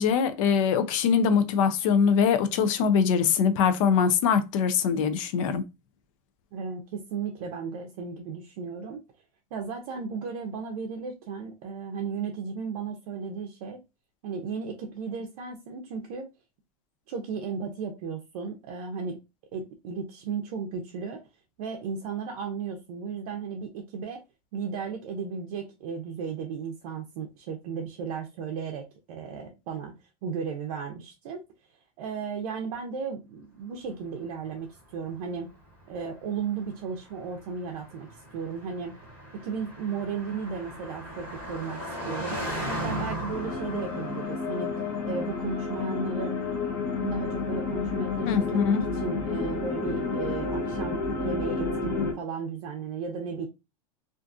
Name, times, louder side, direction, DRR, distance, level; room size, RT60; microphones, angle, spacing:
voice 1, 0.0-5.6 48.2-48.8, left 6 dB, 55° left, 0.4 m, -23 dB
voice 2, 6.5-9.0 9.5-13.8 14.2-16.3 17.1-19.2 19.5-21.2 21.6-24.2 24.5-29.9 30.2-31.4 32.0-35.5 35.9-38.1 38.3-38.9 39.4-44.7 45.0-46.3 47.0-53.5, right 5 dB, 65° right, 0.5 m, -35 dB
Car passing by, 34.3-50.8, equal, 10° left, 1.1 m, -40 dB
sound 1, 43.3-52.1, left 4 dB, 35° left, 0.9 m, -30 dB
2.5 x 2.4 x 2.4 m
supercardioid pair, 165°, 20 cm